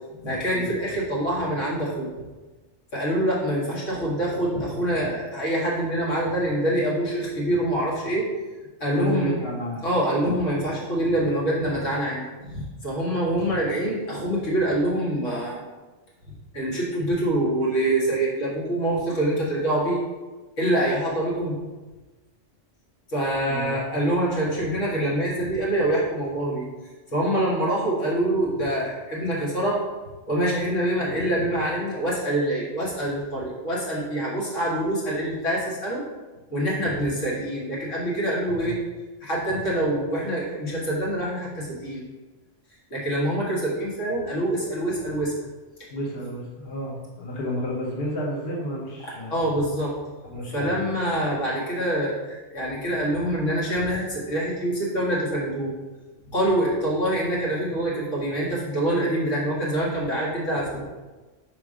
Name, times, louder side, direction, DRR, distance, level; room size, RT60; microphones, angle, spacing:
voice 1, 0.2-2.1 2.9-8.3 8.8-9.3 9.8-15.6 16.3-20.0 20.6-21.6 23.1-26.7 27.1-29.8 30.3-36.0 36.5-38.8 39.2-42.0 42.9-45.3 49.0-49.9 50.5-55.7 56.3-60.8, right 1 dB, 90° left, -6 dB, 2.3 m, -25 dB
voice 2, 8.9-9.9 13.2-13.4 23.5-23.7 38.6-38.7 45.9-49.4 50.2-50.7, equal, 55° left, -3 dB, 1.3 m, -31 dB
5.7 x 4.6 x 5.0 m, 1.2 s
omnidirectional pair, 1.2 m